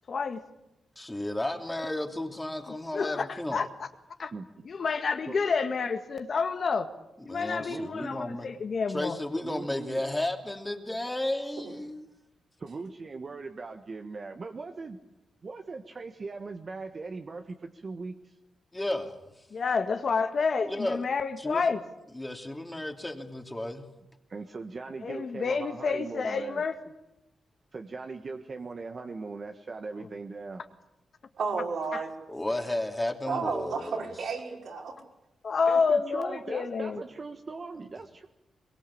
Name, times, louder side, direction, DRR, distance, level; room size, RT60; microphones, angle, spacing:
voice 1, 0.1-0.4 2.9-3.9 4.2-4.3 4.6-6.9 7.2-9.2 19.5-21.8 25.0-26.8 31.9-32.0 35.4-37.0, left 5 dB, 55° left, 7 dB, 1.9 m, -29 dB
voice 2, 1.0-3.6 7.3-8.5 8.9-12.0 18.7-19.2 20.7-21.0 21.4-21.7 22.1-23.8 32.3-34.1, left 1 dB, 15° left, 4 dB, 2.9 m, -33 dB
voice 3, 4.3-4.7 5.3-5.4 7.6-8.1 9.3-10.0 12.6-15.0 15.4-18.4 24.3-26.6 27.7-30.6 35.7-38.3, right 4 dB, 40° right, 4 dB, 1.5 m, -40 dB
voice 4, 31.4-32.1 33.3-34.9, right 4 dB, 70° right, 0 dB, 5.4 m, -32 dB
22.5 x 22.5 x 8.7 m, 0.94 s
cardioid pair, 95°, 0 cm